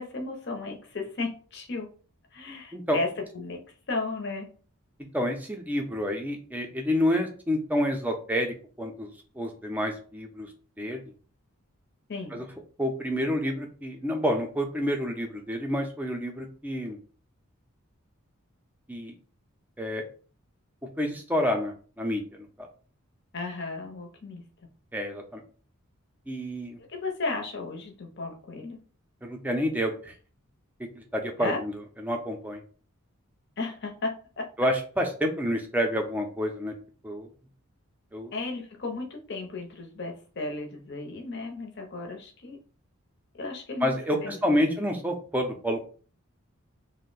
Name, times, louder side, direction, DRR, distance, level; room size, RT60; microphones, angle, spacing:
voice 1, 0.0-1.9 2.3-3.1 3.3-3.6 3.9-4.5 12.1-12.4 23.3-24.4 26.9-28.8 31.4-31.6 33.6-34.7 38.3-42.6 43.3-44.4 44.7-44.8, left 3 dB, 50° left, 2 dB, 0.7 m, -34 dB
voice 2, 5.1-10.5 10.8-11.0 12.3-12.4 12.8-17.0 18.9-19.1 19.8-20.0 21.0-22.7 24.9-25.4 26.3-26.8 29.2-30.1 31.0-32.6 34.6-36.7 37.0-37.3 38.1-38.3 43.8-45.8, equal, 10° right, 2 dB, 0.5 m, -29 dB
2.6 x 2.1 x 3.9 m, 0.40 s
head